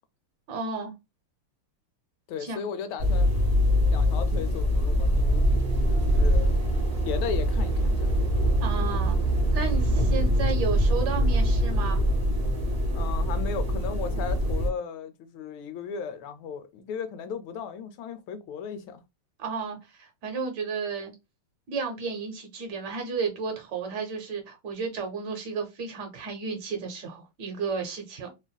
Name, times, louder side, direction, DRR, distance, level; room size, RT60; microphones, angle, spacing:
voice 1, 0.5-0.9 2.4-2.7 8.6-9.2 9.5-12.0 19.4-21.1 21.7-28.3, right 4 dB, 60° right, 1.3 m, -33 dB
voice 2, 2.3-3.3 3.9-5.5 6.1-6.5 7.0-8.1 12.9-19.0, left 7 dB, 80° left, 1.3 m, -36 dB
sound 1, 3.0-14.7, equal, 45° right, 0.8 m, -23 dB
3.3 x 2.4 x 2.2 m
omnidirectional pair, 2.3 m